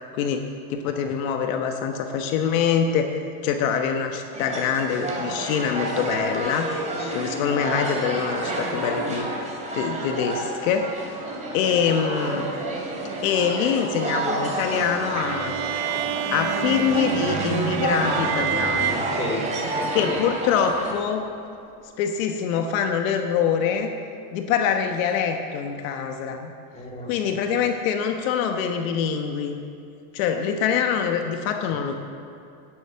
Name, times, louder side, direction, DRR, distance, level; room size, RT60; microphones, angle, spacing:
voice 1, 0.1-3.1 3.4-6.7 7.1-9.3 9.7-10.9 11.5-12.5 13.2-15.5 16.3-19.1 19.9-21.2 22.0-23.9 24.3-26.5 27.1-29.6 30.1-31.9, left 7 dB, 65° left, 5 dB, 1.2 m, -24 dB
sound 1, 4.3-20.9, right 2 dB, 15° right, 2.9 m, -29 dB
sound 2, 15.2-20.4, right 10 dB, 40° right, 0.7 m, -29 dB
voice 2, 15.9-16.2 18.9-20.2 26.7-27.3, left 2 dB, 15° left, -2 dB, 2.3 m, -34 dB
11.5 x 10.5 x 7.6 m, 2.6 s
supercardioid pair, 145°, 43 cm